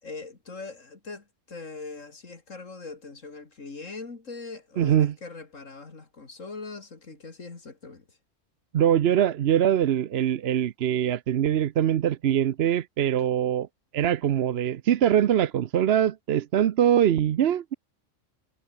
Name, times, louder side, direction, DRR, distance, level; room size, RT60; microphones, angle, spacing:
voice 1, 0.0-8.2, left 3 dB, 80° left, 3.1 m, -41 dB
voice 2, 4.8-5.1 8.7-13.7 13.9-17.7, right 10 dB, 60° right, 0.9 m, -23 dB
omnidirectional pair, 1.3 m